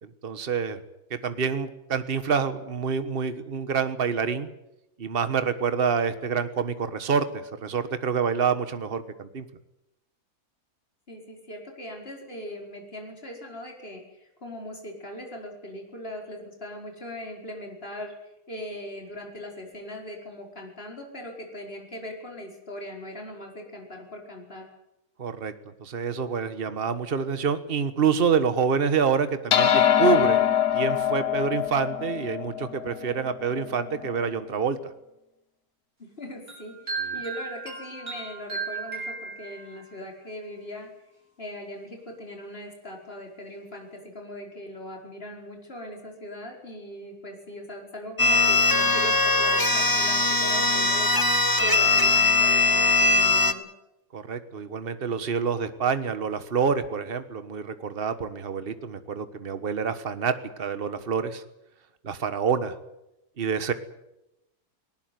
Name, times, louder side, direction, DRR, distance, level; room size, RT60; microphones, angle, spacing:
voice 1, 0.0-0.8 1.1-4.5 5.0-9.4 25.2-25.5 25.8-30.5 30.7-34.9 37.1-37.2 54.1-61.4 62.0-62.7 63.4-63.7, right 6 dB, 40° right, 11 dB, 1.5 m, -27 dB
voice 2, 11.1-24.7 36.2-40.9 41.4-53.7, left 1 dB, 40° left, 1 dB, 5.3 m, -40 dB
sound 1, 29.5-34.2, left 10 dB, 70° left, 1.5 m, -24 dB
sound 2, 36.5-40.0, right 4 dB, 65° right, 8.1 m, -35 dB
sound 3, 48.2-53.5, left 3 dB, 15° left, 1.2 m, -21 dB
19.0 x 18.5 x 9.4 m, 0.88 s
omnidirectional pair, 1.6 m